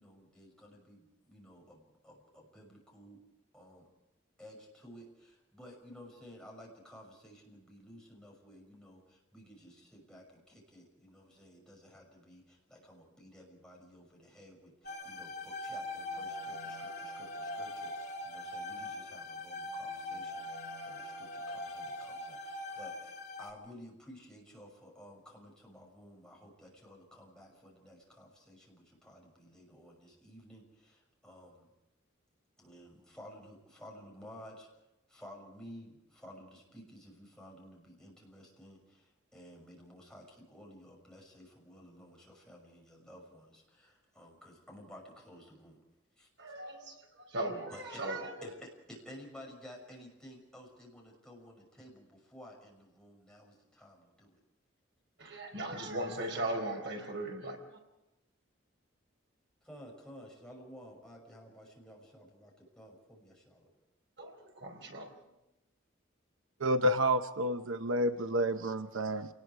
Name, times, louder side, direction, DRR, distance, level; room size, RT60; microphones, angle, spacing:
voice 1, 0.0-3.2 3.5-3.8 4.4-31.7 32.6-34.7 35.1-45.8 46.2-46.3 47.7-48.0 48.4-54.4 59.6-63.7 69.1-69.3, equal, 5° left, -2 dB, 6.2 m, -54 dB
sound 1, 14.8-23.5, left 1 dB, 50° left, 3.0 m, -41 dB
voice 2, 46.4-48.5 55.2-57.8 64.2-65.1, right 1 dB, 65° right, 3 dB, 4.6 m, -38 dB
voice 3, 66.6-69.3, equal, 85° right, 8 dB, 0.9 m, -29 dB
27.5 x 20.0 x 4.8 m, 0.95 s
head